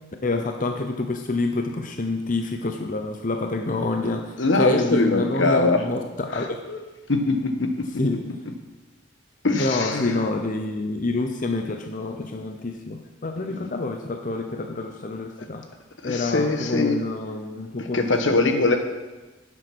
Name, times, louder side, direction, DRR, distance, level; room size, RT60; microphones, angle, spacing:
voice 1, 0.2-6.6 8.0-8.2 9.5-15.6 16.0-18.0 18.3-18.5, left 2 dB, 45° left, 5 dB, 0.8 m, -27 dB
voice 2, 4.4-5.8 6.3-6.8 7.1-7.9 9.4-10.2 13.5-13.7 16.0-17.0 17.9-18.8, left 3 dB, 80° left, 6 dB, 1.3 m, -22 dB
10.5 x 7.9 x 6.1 m, 1.2 s
head